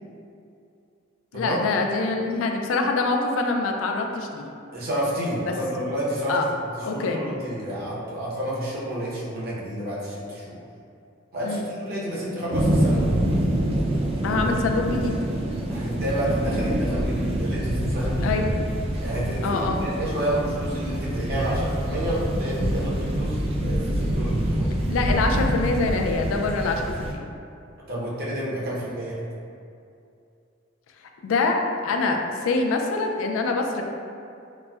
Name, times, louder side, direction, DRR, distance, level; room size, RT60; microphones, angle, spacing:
voice 1, 1.3-4.5 6.3-6.4 6.8-7.2 11.4-11.7 14.2-15.1 18.2-18.5 19.4-19.8 24.9-27.2 31.2-33.8, left 3 dB, 75° left, 3 dB, 0.3 m, -25 dB
voice 2, 4.7-10.6 11.3-13.1 15.7-18.3 19.0-24.7 27.9-29.2, right 1 dB, 50° right, -7 dB, 0.7 m, -29 dB
sound 1, 12.5-27.1, right 1 dB, 30° right, 0.3 m, -26 dB
4.0 x 2.1 x 2.2 m, 2.5 s
head